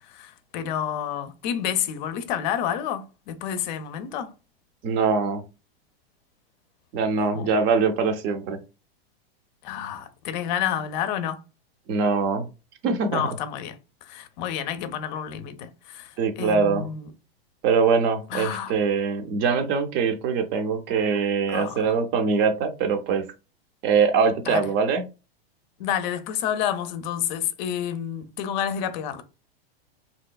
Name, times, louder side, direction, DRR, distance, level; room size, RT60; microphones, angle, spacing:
voice 1, 0.1-4.3 7.3-7.5 9.6-11.4 13.1-13.8 14.1-16.1 16.4-17.1 18.3-18.7 21.5-21.8 24.5-24.7 25.8-29.2, left 9 dB, 50° left, 0.6 m, -29 dB
voice 2, 4.8-5.4 6.9-8.6 11.9-12.5 12.8-13.2 16.2-16.9 17.6-23.2 23.8-25.0, right 5 dB, 35° right, 0.6 m, -23 dB
3.1 x 2.8 x 2.3 m
supercardioid pair, 140°, 31 cm